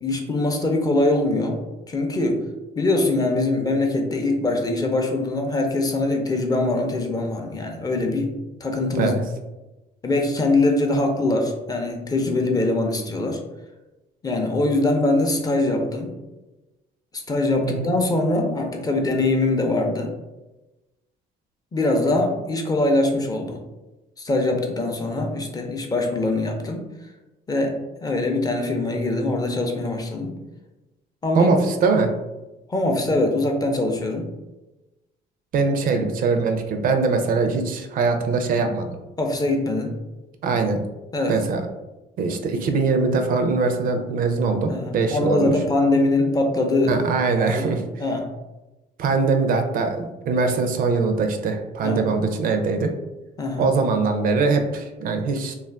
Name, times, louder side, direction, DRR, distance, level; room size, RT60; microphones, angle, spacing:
voice 1, 0.0-1.6 1.9-2.4 2.8-8.3 8.6-9.2 10.0-13.4 14.2-16.1 17.1-20.1 21.7-23.6 24.2-26.8 27.5-30.3 31.2-31.5 32.7-34.3 39.2-39.9 41.1-41.4 44.7-47.0 47.4-47.7 48.0-48.3 51.8-52.1 53.4-53.7, left 2 dB, 20° left, 2 dB, 0.5 m, -22 dB
voice 2, 17.6-17.9 31.3-32.1 35.5-39.0 40.4-40.8 41.3-41.6 42.2-45.5 46.9-47.8 49.0-52.9 53.6-55.5, right 4 dB, 55° right, 6 dB, 0.4 m, -22 dB
2.4 x 2.3 x 3.3 m, 1.0 s
cardioid pair, 110°, 17 cm